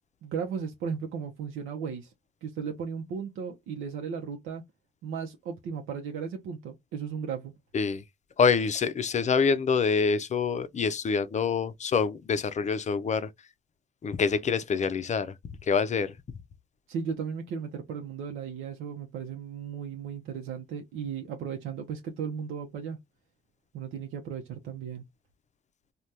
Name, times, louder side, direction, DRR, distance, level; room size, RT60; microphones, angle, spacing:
voice 1, 0.2-2.1 2.4-4.6 5.0-7.5 16.9-23.0 23.7-25.0, right 6 dB, 90° right, 0.7 m, -35 dB
voice 2, 8.4-13.3 14.0-15.3 15.6-16.1, left 5 dB, 35° left, 0.5 m, -26 dB
3.3 x 2.3 x 2.6 m
cardioid pair, 90°, 20 cm